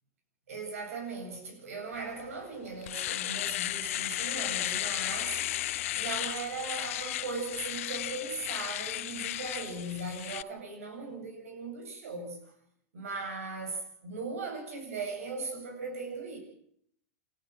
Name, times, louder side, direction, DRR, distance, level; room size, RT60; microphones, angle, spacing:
voice 1, 0.5-5.4 6.0-12.4 12.9-16.4, right 3 dB, 80° right, 2 dB, 8.0 m, -38 dB
Domestic sounds home sounds, 2.2-2.3 2.7-10.4, left 14 dB, 70° left, 0.9 m, -34 dB
29.0 x 13.0 x 7.5 m, 0.67 s
hypercardioid pair, 100°, 8 cm